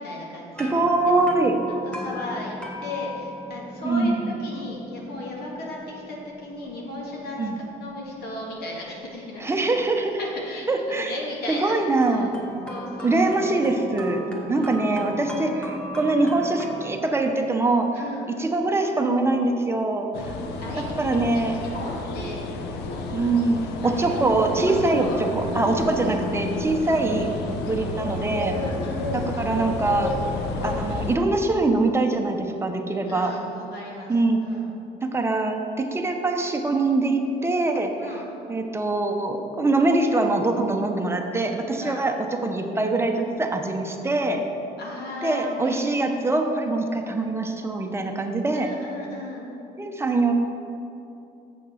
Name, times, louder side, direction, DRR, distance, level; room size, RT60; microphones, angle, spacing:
voice 1, 0.0-0.7 1.1-1.2 1.9-9.7 10.2-12.3 12.7-13.5 14.5-14.7 15.2-15.6 17.9-18.3 20.6-22.5 22.8-23.5 23.8-24.1 24.6-25.2 25.4-26.2 28.5-29.4 33.1-34.1 34.4-34.6 38.0-38.3 41.8-42.0 44.8-46.2 48.5-49.5, left 1 dB, 70° left, -3 dB, 1.9 m, -36 dB
sound 1, 0.5-10.6 12.0-17.0, left 1 dB, 5° left, 1.5 m, -39 dB
voice 2, 0.6-1.6 3.8-4.4 7.4-7.6 9.4-10.2 10.7-11.1 11.5-12.4 13.0-14.2 14.5-18.0 18.3-20.3 21.0-21.5 23.1-28.6 29.1-30.2 30.6-33.3 34.1-34.4 35.0-38.1 38.5-44.4 45.2-48.7 49.8-50.3, right 2 dB, 15° right, 3 dB, 0.8 m, -23 dB
sound 2, 20.1-31.2, left 2 dB, 85° left, 0.8 m, -31 dB
7.5 x 6.5 x 5.7 m, 2.8 s
cardioid pair, 110°, 17 cm